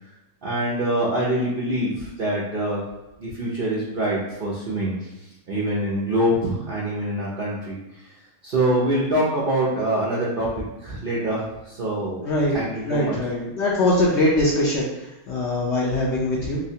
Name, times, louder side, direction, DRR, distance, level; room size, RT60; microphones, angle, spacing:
voice 1, 0.4-2.8 3.2-8.1 8.4-12.2 12.5-13.2, right 1 dB, 65° right, -6 dB, 0.5 m, -25 dB
voice 2, 12.2-12.6 12.9-16.6, left 1 dB, 65° left, -4 dB, 0.7 m, -22 dB
3.2 x 3.1 x 2.7 m, 1.0 s
omnidirectional pair, 1.7 m